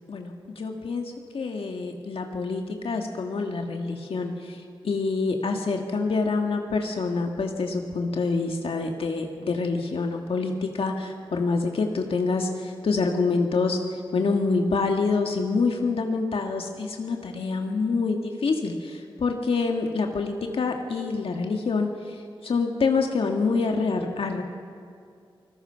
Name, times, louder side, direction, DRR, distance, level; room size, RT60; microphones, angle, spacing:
voice 1, 0.0-24.4, left 4 dB, 85° left, 3 dB, 1.8 m, -26 dB
28.5 x 20.5 x 5.7 m, 2.4 s
wide cardioid pair, 90°, 9 cm